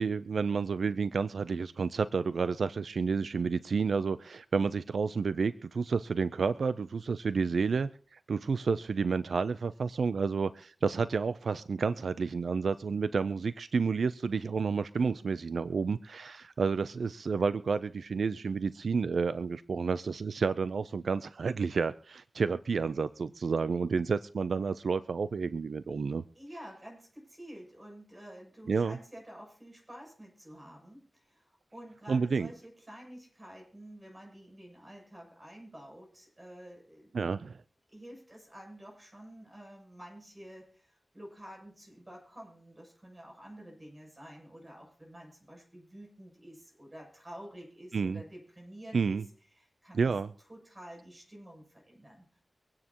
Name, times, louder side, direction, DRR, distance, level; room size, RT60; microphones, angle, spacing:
voice 1, 0.0-26.2 28.7-29.0 32.1-32.5 37.1-37.6 47.9-48.2 48.9-49.2 49.9-50.3, right 5 dB, 80° right, 14 dB, 0.5 m, -30 dB
voice 2, 26.3-37.1 37.9-49.2 49.5-50.1 50.5-52.4, equal, 25° right, -1 dB, 7.6 m, -50 dB
25.0 x 9.7 x 2.9 m, 0.43 s
wide cardioid pair, 80°, 0 cm